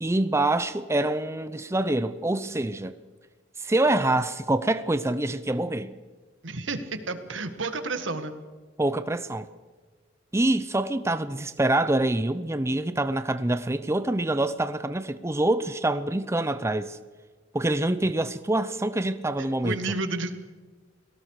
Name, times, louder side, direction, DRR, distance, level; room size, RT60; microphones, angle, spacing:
voice 1, 0.0-2.9 3.6-6.0 8.8-9.5 10.3-17.0 17.5-19.8, right 1 dB, 15° right, 0.6 m, -25 dB
voice 2, 6.4-8.3 19.6-20.3, right 3 dB, 90° right, 1.8 m, -31 dB
29.5 x 18.5 x 4.9 m
head